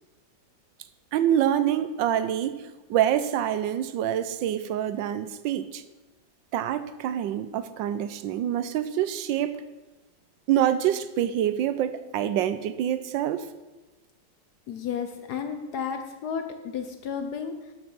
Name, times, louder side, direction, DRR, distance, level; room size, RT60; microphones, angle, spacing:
voice 1, 1.1-5.8 6.5-9.6 10.5-13.5, right 10 dB, 85° right, 1.4 m, -26 dB
voice 2, 14.7-17.7, left 7 dB, 65° left, 1.2 m, -33 dB
12.0 x 6.4 x 6.1 m
omnidirectional pair, 2.0 m